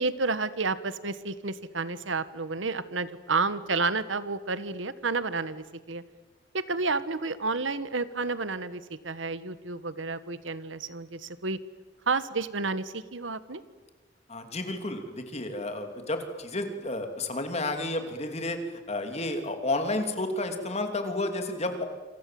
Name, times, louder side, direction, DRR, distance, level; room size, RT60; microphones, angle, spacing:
voice 1, 0.0-6.0 6.5-11.6 12.1-13.6, right 3 dB, 90° right, 14 dB, 1.4 m, -30 dB
voice 2, 14.3-21.8, left 2 dB, 35° left, 6 dB, 3.1 m, -31 dB
27.5 x 26.5 x 7.8 m, 1.3 s
head